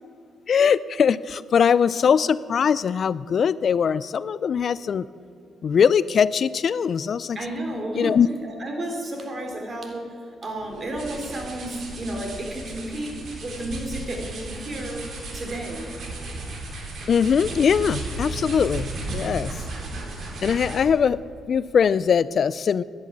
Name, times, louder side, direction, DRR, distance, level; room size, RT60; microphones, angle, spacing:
voice 1, 0.5-5.0 5.6-7.4 8.0-8.3 17.1-19.5 20.4-22.8, left 7 dB, 55° left, 18 dB, 0.3 m, -21 dB
voice 2, 7.3-15.9, right 1 dB, 35° right, 3 dB, 3.2 m, -32 dB
sound 1, 10.6-21.0, right 2 dB, 60° right, 3.6 m, -35 dB
11.0 x 10.5 x 9.5 m, 2.4 s
cardioid pair, 90°, 0 cm